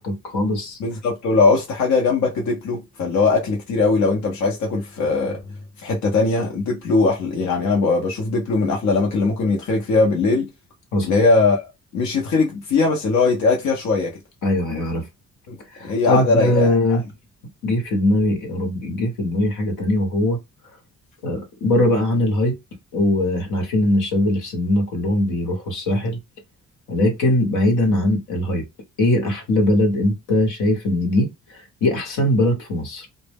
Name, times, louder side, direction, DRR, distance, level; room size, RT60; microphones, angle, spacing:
voice 1, 0.0-0.8 10.9-11.1 14.4-15.0 15.7-17.0 17.6-20.4 21.2-22.6 22.9-26.2 26.9-28.6 29.0-33.1, left 1 dB, 85° left, 1.0 m, -21 dB
voice 2, 0.8-5.4 5.8-10.5 11.0-14.2 15.5-15.6 15.8-17.0, left 3 dB, 70° left, 0.7 m, -20 dB
2.0 x 2.0 x 3.4 m
cardioid pair, 90°, 30 cm